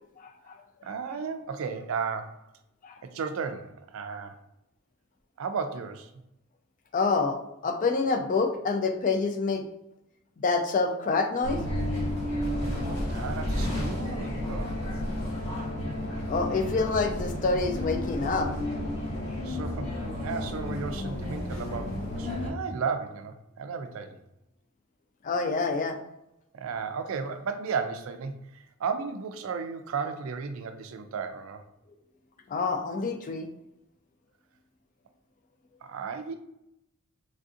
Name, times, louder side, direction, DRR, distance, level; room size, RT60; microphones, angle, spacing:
voice 1, 0.2-0.5 2.8-3.0 6.9-9.6 10.4-11.6 16.3-18.5 25.2-26.0 32.5-33.5, left 4 dB, 35° left, 6 dB, 0.3 m, -27 dB
voice 2, 0.8-2.5 3.0-4.4 5.4-6.1 12.8-14.8 19.4-19.9 20.2-24.2 26.5-31.6 35.8-36.3, right 5 dB, 65° right, 8 dB, 0.3 m, -34 dB
sound 1, 11.4-22.5, left 1 dB, 55° left, 1.3 m, -32 dB
3.3 x 2.6 x 2.5 m, 0.83 s
head